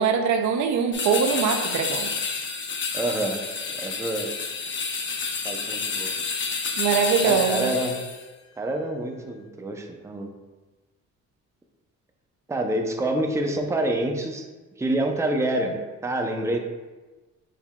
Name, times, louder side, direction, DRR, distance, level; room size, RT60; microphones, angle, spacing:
voice 1, 0.0-2.1 6.8-7.7, right 6 dB, 70° right, 5 dB, 0.5 m, -22 dB
sound 1, 0.9-8.2, left 4 dB, 40° left, 0.6 m, -29 dB
voice 2, 2.9-3.4 3.7-4.3 5.4-6.2 7.2-8.0 8.6-10.3 12.5-14.5 14.8-16.6, right 1 dB, 10° right, 3 dB, 0.5 m, -27 dB
6.3 x 3.4 x 2.2 m, 1.2 s
cardioid pair, 90°, 30 cm